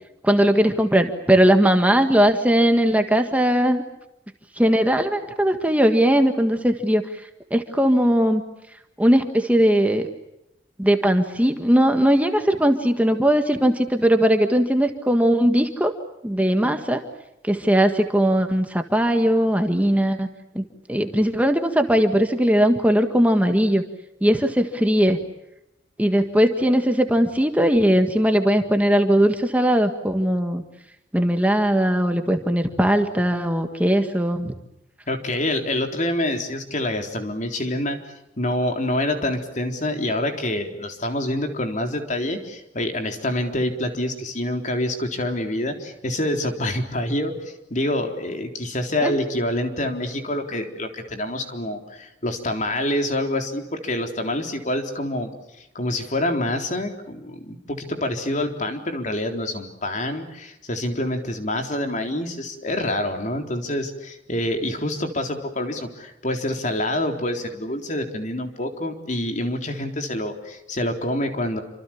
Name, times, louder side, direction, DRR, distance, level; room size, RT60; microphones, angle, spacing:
voice 1, 0.2-3.8 4.6-7.0 7.5-8.4 9.0-10.1 10.8-15.9 16.2-17.0 17.4-20.3 20.5-20.6 20.9-23.8 24.2-25.2 26.0-30.6 31.1-34.5 49.0-49.1, equal, 10° right, 6 dB, 1.6 m, -19 dB
voice 2, 35.1-38.0 38.4-55.3 55.7-71.6, left 1 dB, 45° left, 5 dB, 3.8 m, -26 dB
28.5 x 26.0 x 7.3 m, 0.89 s
head